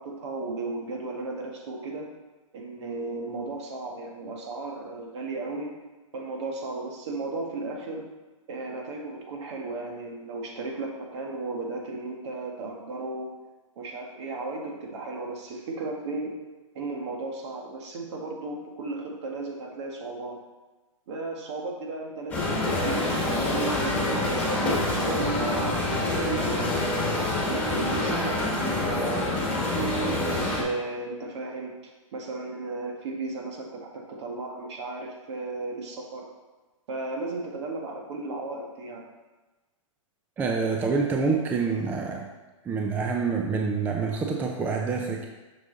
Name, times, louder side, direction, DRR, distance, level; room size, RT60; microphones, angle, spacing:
voice 1, 0.0-2.1 2.5-5.8 6.1-8.1 8.5-13.3 13.7-16.4 16.7-20.4 21.1-27.0 27.5-29.3 29.7-31.7 32.1-36.3 36.9-39.0, right 3 dB, 55° right, 0 dB, 1.7 m, -35 dB
sound 1, 22.3-30.6, left 1 dB, 10° left, 1.8 m, -26 dB
voice 2, 40.4-42.3 42.6-45.3, right 4 dB, 10° right, 1 dB, 0.4 m, -27 dB
6.5 x 6.0 x 3.9 m, 1.2 s
hypercardioid pair, 140°, 17 cm